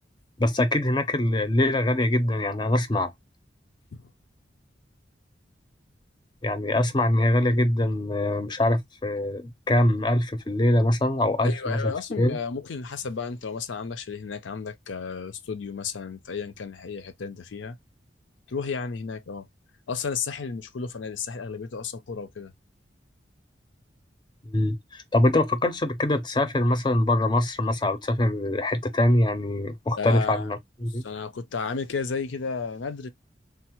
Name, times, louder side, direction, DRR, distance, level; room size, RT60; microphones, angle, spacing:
voice 1, 0.4-3.1 6.4-12.4 24.4-31.0, left 1 dB, 25° left, 0.5 m, -23 dB
voice 2, 11.4-17.8 18.5-19.5 19.9-22.5 30.0-30.5 31.0-33.1, left 5 dB, 85° left, 0.5 m, -33 dB
3.3 x 2.0 x 2.8 m
head